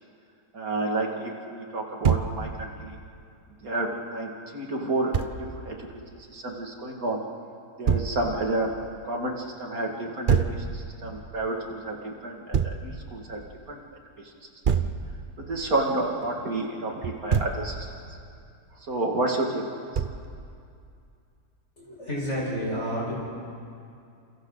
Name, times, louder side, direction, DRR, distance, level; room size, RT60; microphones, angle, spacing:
voice 1, 0.5-3.0 3.6-5.2 5.6-5.9 6.3-7.2 7.8-8.7 9.1-13.4 13.7-13.8 14.7-14.8 15.4-17.9 18.8-19.6, right 2 dB, 60° right, 0 dB, 2.8 m, -30 dB
Thump thud, 2.0-2.3 5.1-5.3 7.9-8.1 10.3-10.6 12.5-12.8 14.6-15.0 17.0-17.6 19.9-20.3, right 7 dB, 40° right, 0.8 m, -24 dB
voice 2, 21.8-23.1, equal, 45° left, -5 dB, 5.6 m, -30 dB
29.5 x 28.5 x 4.1 m, 2.4 s
omnidirectional pair, 1.7 m